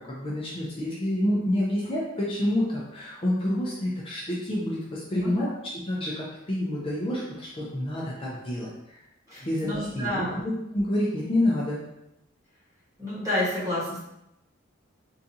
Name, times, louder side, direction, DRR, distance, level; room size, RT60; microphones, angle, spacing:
voice 1, 0.0-9.0 9.4-11.8, left 1 dB, 30° left, -5 dB, 0.5 m, -28 dB
voice 2, 5.1-5.5 9.3-10.4 13.0-14.0, left 1 dB, 15° right, -8 dB, 1.3 m, -30 dB
3.7 x 2.4 x 2.7 m, 0.86 s
head